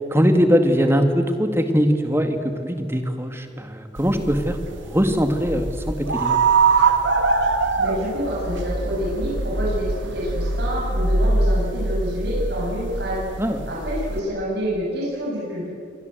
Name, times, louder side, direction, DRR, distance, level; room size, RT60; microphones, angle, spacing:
voice 1, 0.1-6.4 13.4-13.6, equal, 15° right, 6 dB, 2.0 m, -21 dB
sound 1, 4.0-14.2, right 3 dB, 90° right, 2.3 m, -23 dB
voice 2, 7.8-9.9 10.1-13.2 13.7-15.7, equal, 60° right, -5 dB, 7.3 m, -27 dB
28.0 x 23.5 x 8.1 m, 2.3 s
head